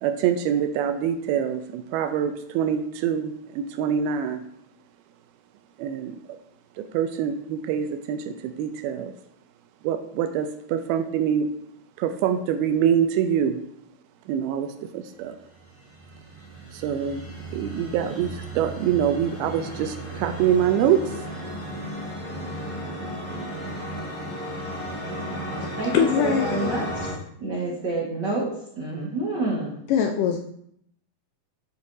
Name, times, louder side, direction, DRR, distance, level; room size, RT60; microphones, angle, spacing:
voice 1, 0.0-4.4 5.8-6.2 6.8-9.1 9.8-11.5 12.0-13.6 14.3-15.4 16.7-17.2 17.5-21.0, right 9 dB, 80° right, 8 dB, 2.4 m, -25 dB
sound 1, 15.6-27.1, right 1 dB, 10° left, 0.6 m, -34 dB
voice 2, 25.6-26.9 27.7-27.8 29.9-30.4, left 8 dB, 90° left, 4 dB, 1.9 m, -24 dB
voice 3, 26.2-26.9 27.4-28.5 28.8-29.8, right 2 dB, 65° right, -5 dB, 1.0 m, -27 dB
9.9 x 8.1 x 2.6 m, 0.70 s
omnidirectional pair, 4.5 m